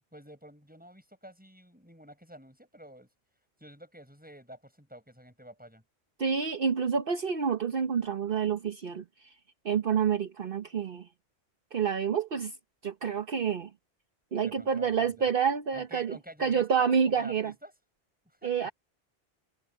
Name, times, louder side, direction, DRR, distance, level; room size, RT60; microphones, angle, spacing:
voice 1, 0.1-3.1 3.6-5.8 14.4-15.3 15.7-17.7 18.4-18.7, equal, 10° right, 7.1 m, -50 dB
voice 2, 6.2-9.3 9.6-11.1 11.7-12.5 12.8-13.7 14.3-17.5 18.4-18.7, right 6 dB, 55° right, 1.2 m, -28 dB
omnidirectional pair, 1.1 m